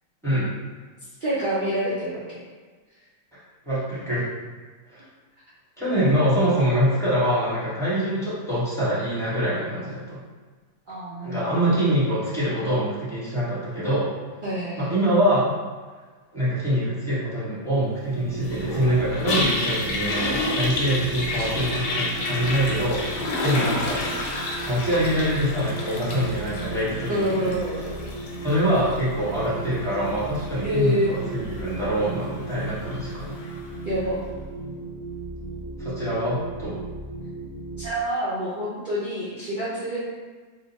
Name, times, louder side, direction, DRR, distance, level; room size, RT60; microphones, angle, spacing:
voice 1, 0.2-0.5 3.6-4.3 4.9-5.1 5.8-10.2 11.2-14.1 14.8-15.6 16.3-24.0 24.7-27.5 28.4-33.4 35.8-36.8, equal, 5° left, -10 dB, 0.7 m, -24 dB
voice 2, 1.2-2.4 10.9-11.7 14.4-14.9 23.5-23.7 27.1-28.2 30.6-31.1 33.8-34.2 37.8-40.0, equal, 75° right, -9 dB, 0.4 m, -27 dB
sound 1, 18.1-37.9, right 3 dB, 45° right, 0.8 m, -36 dB
Toilet flush, 18.4-33.7, left 2 dB, 80° left, 1.2 m, -31 dB
2.8 x 2.1 x 3.9 m, 1.4 s
omnidirectional pair, 1.8 m